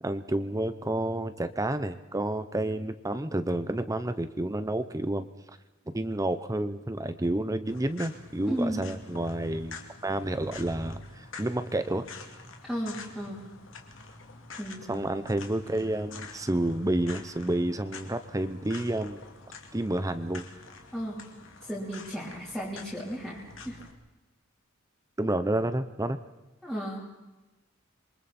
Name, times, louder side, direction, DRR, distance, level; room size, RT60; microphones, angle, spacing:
voice 1, 0.0-5.6 5.9-12.1 14.9-19.2 19.7-20.5 25.2-26.2, right 1 dB, 15° right, 10 dB, 0.8 m, -30 dB
sound 1, 7.7-23.9, left 4 dB, 65° left, 2.6 m, -47 dB
voice 2, 8.5-8.8 12.6-13.4 14.6-14.9 20.9-21.3 21.6-23.8 26.6-27.1, equal, 5° left, -7 dB, 3.5 m, -34 dB
27.5 x 23.5 x 4.3 m, 1.1 s
head